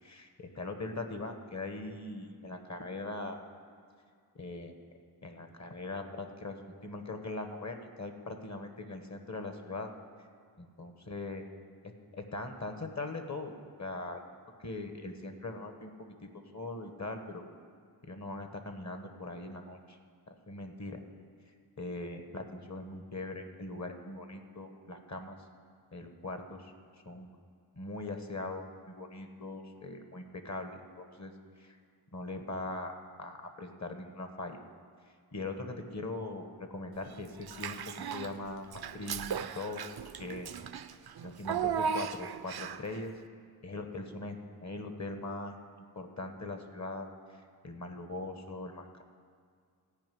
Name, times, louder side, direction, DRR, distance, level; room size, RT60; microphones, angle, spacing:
voice 1, 0.0-3.4 4.3-4.7 5.2-9.9 10.6-11.4 12.1-13.5 13.8-15.9 16.2-17.4 18.0-20.0 20.3-21.0 21.8-25.4 25.9-26.7 27.0-27.3 27.8-31.3 31.6-31.8 32.1-34.6 35.3-39.9 40.2-40.5 40.9-41.0 41.2-43.1 43.6-45.6 45.9-49.0, left 2 dB, 45° left, 6 dB, 1.2 m, -41 dB
Child speech kid speaking / Bathtub (filling or washing), 37.4-38.3 38.7-42.9, right 7 dB, 70° right, 0.5 m, -36 dB
14.5 x 5.3 x 9.2 m, 2.2 s
wide cardioid pair, 75°, 40 cm